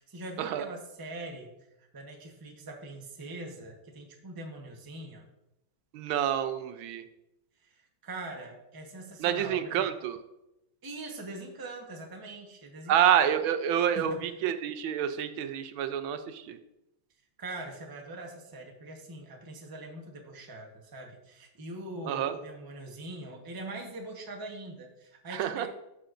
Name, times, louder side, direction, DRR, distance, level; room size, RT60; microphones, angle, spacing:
voice 1, 0.0-1.5 1.8-5.3 7.6-9.9 10.8-13.0 13.9-14.2 17.4-25.7, right 2 dB, 20° right, 1 dB, 0.7 m, -42 dB
voice 2, 5.9-7.0 9.2-10.2 12.9-16.6 22.0-22.3 25.3-25.7, right 9 dB, 80° right, 9 dB, 1.4 m, -28 dB
11.0 x 6.9 x 2.5 m, 0.89 s
omnidirectional pair, 2.2 m